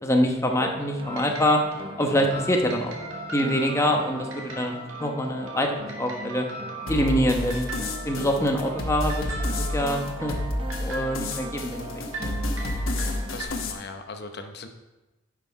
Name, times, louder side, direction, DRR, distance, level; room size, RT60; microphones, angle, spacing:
voice 1, 0.0-1.6 2.0-2.9 3.3-4.7 5.0-6.5 6.9-7.6 8.0-9.2 9.6-10.4 10.8-11.9, equal, 15° left, 2 dB, 1.0 m, -24 dB
sound 1, 0.6-13.4, right 3 dB, 25° right, 0.6 m, -40 dB
sound 2, 1.0-13.4, right 1 dB, 80° right, 1.8 m, -39 dB
sound 3, 6.9-13.7, left 1 dB, 85° left, 1.1 m, -30 dB
voice 2, 13.3-14.7, left 3 dB, 55° left, 6 dB, 0.8 m, -38 dB
10.0 x 5.7 x 4.6 m, 1.1 s
head